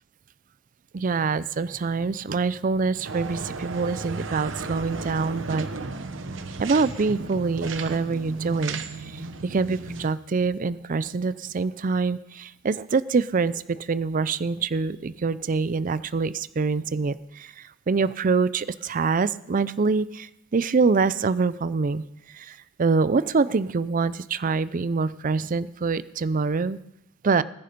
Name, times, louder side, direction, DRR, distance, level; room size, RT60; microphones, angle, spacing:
voice 1, 0.9-5.7 6.6-8.8 9.4-17.5 17.9-22.0 22.3-26.8 27.2-27.4, right 4 dB, 45° right, 17 dB, 0.4 m, -25 dB
sound 1, 3.0-10.1, right 3 dB, 70° right, 1.0 m, -34 dB
19.5 x 10.0 x 5.3 m, 0.83 s
head